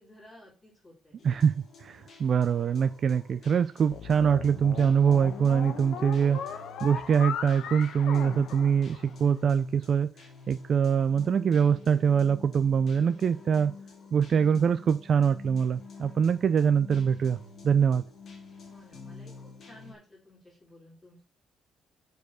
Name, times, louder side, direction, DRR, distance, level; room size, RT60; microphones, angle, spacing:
voice 1, 0.0-1.2 18.7-21.2, left 1 dB, 20° left, -6 dB, 4.3 m, -54 dB
sound 1, 1.2-19.9, left 4 dB, 40° left, 2.3 m, -49 dB
voice 2, 1.2-6.4 6.8-10.1 10.5-13.7 14.1-17.4 17.6-18.0, right 7 dB, 40° right, 10 dB, 0.4 m, -24 dB
sound 2, 3.9-9.4, left 8 dB, 75° left, 1.0 m, -38 dB
7.2 x 4.6 x 6.3 m, 0.37 s
cardioid pair, 170°, 0 cm